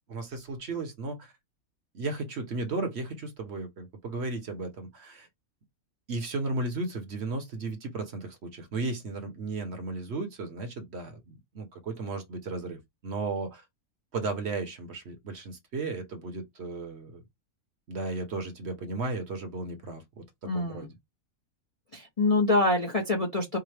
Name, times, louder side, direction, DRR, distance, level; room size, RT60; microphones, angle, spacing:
voice 1, 0.1-1.3 1.9-5.3 6.1-13.6 14.1-17.2 17.9-20.9, right 3 dB, 55° right, 1.0 m, -35 dB
voice 2, 20.5-20.9 21.9-23.6, left 2 dB, 40° left, 0.5 m, -25 dB
4.7 x 2.0 x 3.2 m
omnidirectional pair, 1.5 m